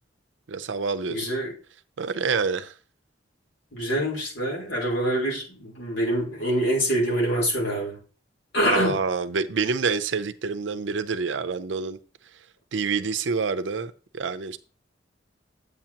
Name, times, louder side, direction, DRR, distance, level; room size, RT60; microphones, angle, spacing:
voice 1, 0.5-1.2 2.0-2.7 8.6-12.0 12.7-14.6, right 5 dB, 85° right, 0.6 m, -27 dB
voice 2, 1.1-1.5 3.7-8.0 8.5-9.0, right 1 dB, 80° left, 3.7 m, -25 dB
8.9 x 8.0 x 2.9 m
head